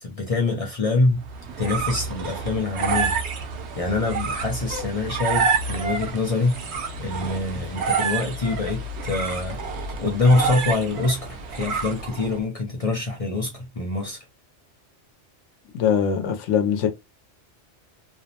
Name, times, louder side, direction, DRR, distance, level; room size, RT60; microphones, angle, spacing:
voice 1, 0.0-1.2 1.6-3.1 3.8-6.5 7.0-9.6 9.9-14.2, left 3 dB, 40° left, 0.5 m, -25 dB
sound 1, 1.2-12.4, right 5 dB, 70° right, 0.9 m, -28 dB
voice 2, 15.7-16.9, left 8 dB, 85° left, 0.9 m, -22 dB
2.6 x 2.0 x 2.7 m
omnidirectional pair, 1.2 m